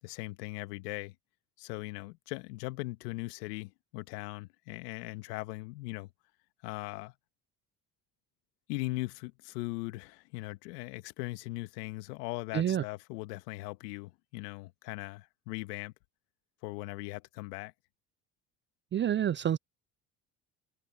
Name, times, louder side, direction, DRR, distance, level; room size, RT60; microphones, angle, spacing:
voice 1, 0.0-1.1 1.6-6.1 6.6-7.1 8.7-15.9 16.6-17.7, left 22 dB, 85° left, 1.6 m, -39 dB
voice 2, 18.9-19.6, right 10 dB, 30° right, 0.3 m, -28 dB
hypercardioid pair, 60°, 47 cm